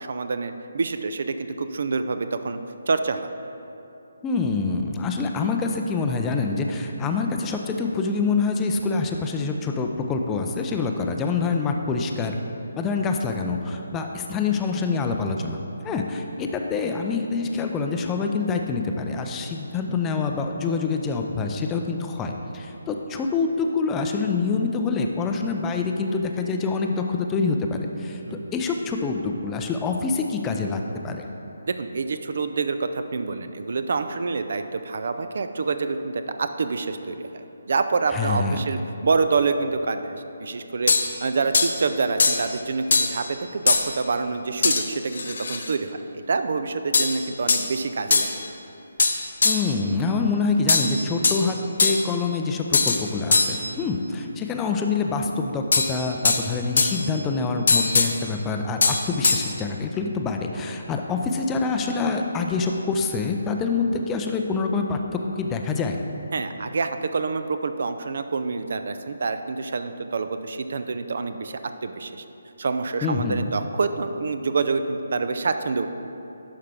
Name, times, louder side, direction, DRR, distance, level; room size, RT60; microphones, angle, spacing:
voice 1, 0.0-2.6 2.9-3.3 28.3-28.5 31.8-36.1 36.4-40.2 40.4-48.3 66.3-72.2 72.6-75.9, right 4 dB, 50° right, 9 dB, 0.4 m, -27 dB
voice 2, 4.2-12.4 12.8-31.2 38.1-38.6 49.4-66.0 73.0-73.5, left 4 dB, 10° left, 3 dB, 0.4 m, -26 dB
sound 1, 40.9-41.1 41.5-41.7 42.2-42.5 42.9-43.2 43.7-43.9 44.6-44.8 45.1-45.7 46.9-47.2 47.5-47.7 48.1-48.3 49.0-49.7 50.7-51.4 51.8-52.1 52.7-53.0 53.3-53.6 55.7-56.4 56.8-57.1 57.7-58.1 58.8-59.4, left 4 dB, 50° left, 0.6 m, -21 dB
11.0 x 5.7 x 3.5 m, 3.0 s
figure-of-eight pair, 145°, 0 cm